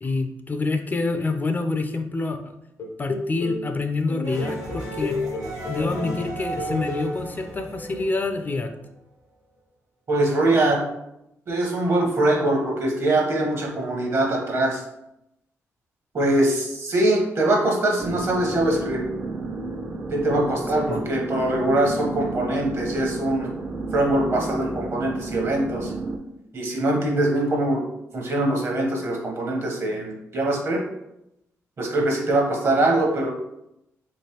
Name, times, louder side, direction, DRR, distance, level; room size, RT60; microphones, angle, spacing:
voice 1, 0.0-2.5 3.0-5.2 5.6-8.7 20.9-21.0, left 3 dB, 30° left, 6 dB, 0.3 m, -27 dB
sound 1, 2.8-3.6 4.1-6.3 6.6-7.1, left 3 dB, 80° left, 0.6 m, -31 dB
sound 2, 4.2-9.0, right 2 dB, 80° right, 1.1 m, -35 dB
voice 2, 10.1-10.8 11.5-14.8 16.1-19.0 20.1-23.5 23.9-25.9 26.5-27.8 28.1-30.8 31.8-33.3, right 1 dB, 55° right, 0 dB, 1.0 m, -22 dB
sound 3, 18.0-26.2, right 3 dB, 35° right, 0.4 m, -32 dB
3.1 x 3.0 x 2.9 m, 0.85 s
cardioid pair, 75°, 6 cm